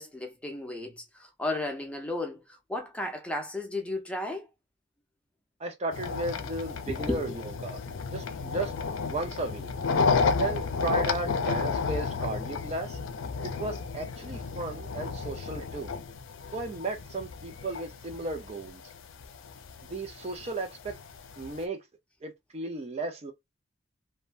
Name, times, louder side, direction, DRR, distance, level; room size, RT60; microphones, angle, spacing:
voice 1, 0.0-2.4 2.7-4.5 6.9-7.2, left 2 dB, 5° left, 0.6 m, -34 dB
voice 2, 5.6-7.8 8.1-8.7 9.0-9.7 10.2-13.0 13.4-15.9 16.5-18.8 19.9-21.0 21.4-21.8 22.2-23.3, right 2 dB, 35° right, 0.4 m, -35 dB
sound 1, 5.9-21.6, left 5 dB, 90° left, 0.5 m, -32 dB
3.1 x 2.1 x 2.3 m
head